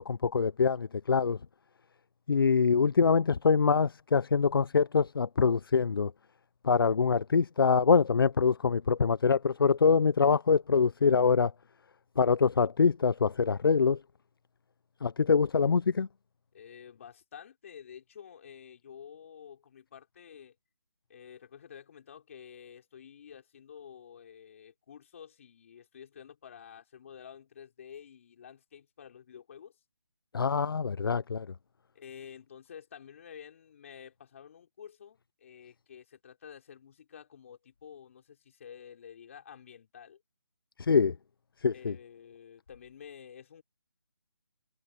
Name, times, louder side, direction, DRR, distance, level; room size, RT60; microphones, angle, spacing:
voice 1, 0.0-1.4 2.3-6.1 6.6-11.5 12.2-14.0 15.0-16.1 30.3-31.5 40.9-41.1 41.6-42.0, left 5 dB, 55° left, 0.6 m, -24 dB
voice 2, 16.5-20.5 21.1-29.7 31.9-40.2 41.7-43.6, left 8 dB, 30° left, 4.6 m, -50 dB
hypercardioid pair, 170°, 14 cm